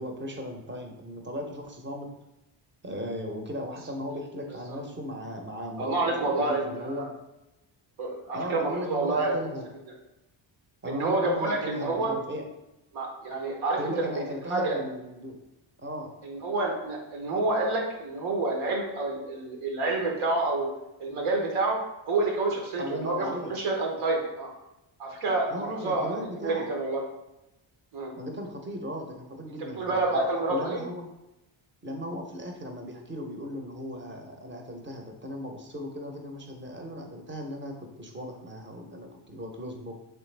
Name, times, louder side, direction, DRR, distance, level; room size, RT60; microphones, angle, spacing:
voice 1, 0.0-2.1 2.8-7.1 8.3-9.7 10.8-12.4 13.8-15.4 15.8-16.1 22.8-23.5 25.5-26.7 28.2-30.0 30.5-31.1 31.8-40.0, equal, 25° right, 2 dB, 0.7 m, -37 dB
voice 2, 5.8-7.1 8.0-9.6 10.8-12.1 12.9-14.2 14.5-14.8 16.2-20.7 21.0-21.8 22.1-24.5 25.0-26.2 26.4-27.0 27.9-28.1 29.8-30.8, right 2 dB, 80° right, 0 dB, 1.0 m, -28 dB
3.3 x 3.2 x 3.3 m, 0.94 s
cardioid pair, 85°, 49 cm